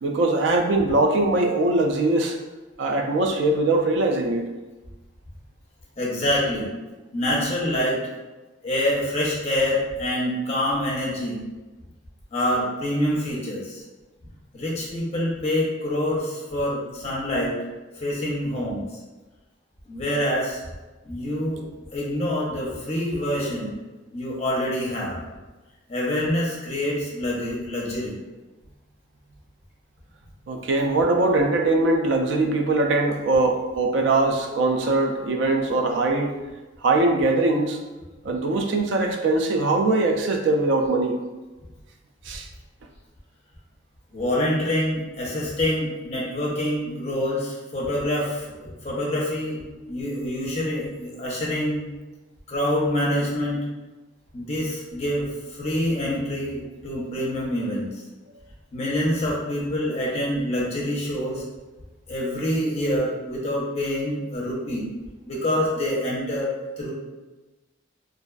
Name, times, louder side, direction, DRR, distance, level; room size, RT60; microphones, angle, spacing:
voice 1, 0.0-2.4 2.8-4.4 30.5-36.4 36.8-37.8 38.2-41.2 42.3-42.5, right 2 dB, 65° right, 2 dB, 0.3 m, -21 dB
voice 2, 6.0-6.7 7.1-8.0 8.6-11.4 12.3-13.8 14.5-17.6 18.0-19.0 19.9-20.6 21.0-21.6 21.9-23.8 24.1-25.2 25.9-28.2 44.1-49.6 49.9-51.8 52.5-53.6 54.3-58.0 58.7-61.4 62.1-64.9 65.3-66.9, left 1 dB, 35° left, -4 dB, 0.6 m, -26 dB
2.4 x 2.2 x 2.3 m, 1.2 s
head